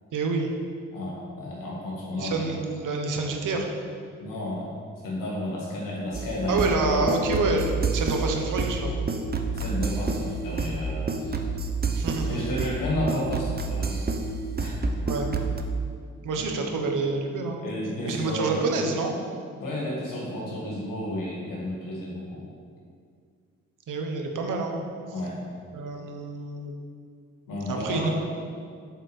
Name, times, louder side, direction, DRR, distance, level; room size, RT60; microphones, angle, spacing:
voice 1, 0.1-0.5 2.1-3.7 6.5-8.9 11.9-12.4 15.0-15.3 16.2-17.6 18.1-19.1 23.9-24.7 25.7-26.7 27.7-28.1, right 3 dB, 70° right, 3 dB, 1.0 m, -27 dB
voice 2, 0.9-2.6 4.2-4.7 5.0-7.0 9.5-11.4 12.2-14.1 14.6-14.7 16.3-16.4 17.6-18.6 19.6-22.4 25.1-25.4 27.5-28.1, left 1 dB, 80° left, -4 dB, 1.8 m, -32 dB
sound 1, 6.1-15.6, right 3 dB, 30° right, 0.8 m, -29 dB
7.6 x 6.6 x 3.3 m, 2.1 s
supercardioid pair, 45°, 33 cm